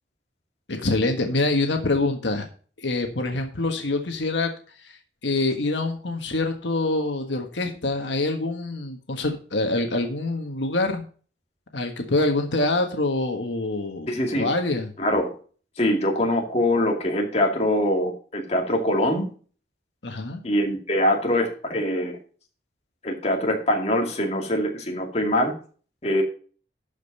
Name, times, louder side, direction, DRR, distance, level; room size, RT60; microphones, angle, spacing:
voice 1, 0.7-2.4 2.8-4.5 5.2-11.0 11.7-14.9 20.0-20.4, left 2 dB, 85° left, 5 dB, 1.5 m, -25 dB
voice 2, 14.1-14.5 15.0-15.3 15.8-19.3 20.4-22.2 23.0-25.5 26.0-26.2, left 1 dB, 35° left, 1 dB, 2.3 m, -23 dB
12.5 x 5.3 x 5.4 m, 0.41 s
head